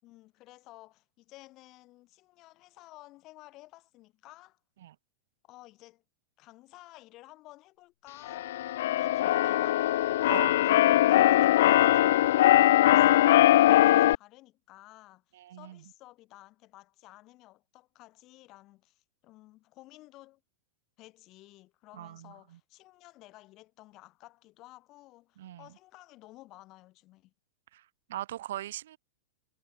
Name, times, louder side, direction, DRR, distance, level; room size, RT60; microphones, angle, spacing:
voice 1, 0.0-4.6 5.4-6.0 6.4-8.5 8.8-10.3 10.6-20.4 21.0-27.3, left 18 dB, 45° left, 6.6 m, -54 dB
Keyboard (musical), 8.3-14.1, left 14 dB, 70° left, 0.5 m, -21 dB
voice 2, 15.3-15.8 21.9-22.6 25.4-25.7 27.7-29.0, right 13 dB, 75° right, 1.3 m, -40 dB
hypercardioid pair, 115°, 0 cm